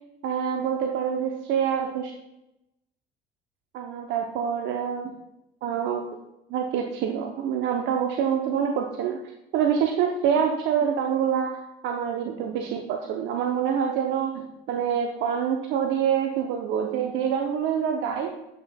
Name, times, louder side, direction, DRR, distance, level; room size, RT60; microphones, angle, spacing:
voice 1, 0.2-2.1 3.7-5.1 5.6-6.1 6.5-9.2 9.5-18.3, right 8 dB, 65° right, 3 dB, 0.7 m, -26 dB
8.3 x 5.9 x 2.2 m, 0.87 s
hypercardioid pair, 65°, 21 cm